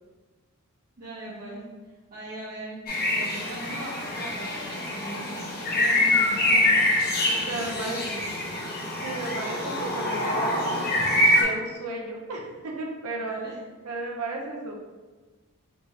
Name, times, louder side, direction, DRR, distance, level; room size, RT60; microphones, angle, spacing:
voice 1, 1.0-1.6 2.1-2.8 3.1-6.6 7.2-8.3 13.2-13.5, right 1 dB, 45° right, -12 dB, 1.2 m, -39 dB
sound 1, 2.9-11.4, left 1 dB, 45° left, 0.9 m, -25 dB
voice 2, 7.5-8.0 9.0-10.6 11.4-13.4 13.8-14.7, right 2 dB, 80° right, 0 dB, 0.7 m, -33 dB
4.2 x 2.7 x 3.2 m, 1.3 s
head